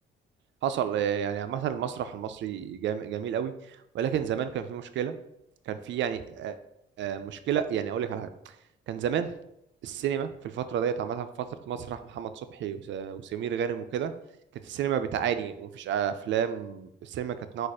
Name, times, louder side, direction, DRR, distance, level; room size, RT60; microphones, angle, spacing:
voice 1, 0.6-3.5 3.9-5.2 5.7-6.6 7.0-8.3 8.9-9.3 9.8-11.3 11.7-14.1 14.6-17.7, right 9 dB, 70° right, 10 dB, 0.5 m, -30 dB
4.1 x 2.5 x 4.7 m, 0.78 s
cardioid pair, 90°, 20 cm